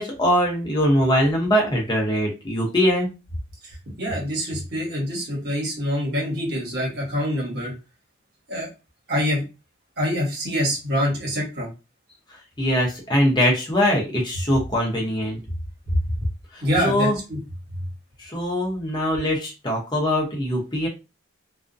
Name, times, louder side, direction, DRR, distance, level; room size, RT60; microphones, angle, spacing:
voice 1, 0.0-3.1 12.6-15.4 16.5-17.2 18.2-20.9, equal, 20° left, -1 dB, 0.7 m, -22 dB
voice 2, 4.0-7.7 8.5-8.7 9.1-9.4 10.0-11.7 16.6-17.4, equal, 50° right, -3 dB, 1.1 m, -25 dB
2.3 x 2.1 x 2.5 m, 0.27 s
head